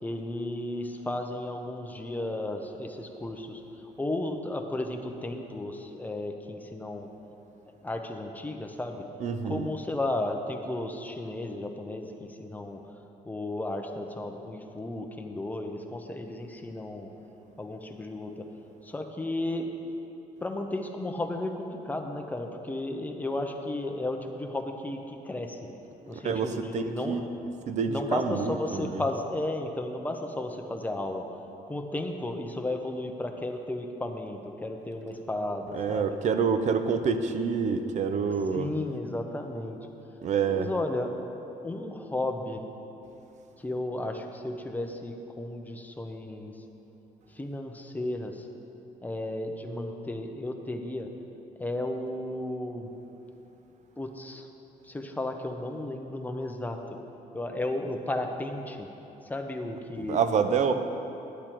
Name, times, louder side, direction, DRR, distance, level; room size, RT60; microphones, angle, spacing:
voice 1, 0.0-3.6 4.0-7.1 7.6-9.0 9.4-12.8 13.3-17.1 17.6-18.5 18.8-19.7 20.4-25.6 26.1-27.2 27.9-31.2 31.7-36.2 38.5-39.8 40.5-41.2 41.6-42.6 43.6-46.6 47.3-48.5 49.0-51.1 51.5-52.9 54.0-54.5 54.8-57.0 57.3-58.9 59.2-60.2, left 1 dB, 10° left, 3 dB, 0.8 m, -34 dB
voice 2, 9.2-9.7 26.2-27.2 27.7-29.0 35.7-38.7 40.2-40.7 60.0-60.7, right 6 dB, 55° right, 9 dB, 0.6 m, -27 dB
10.5 x 8.2 x 4.5 m, 3.0 s
cardioid pair, 100°, 15 cm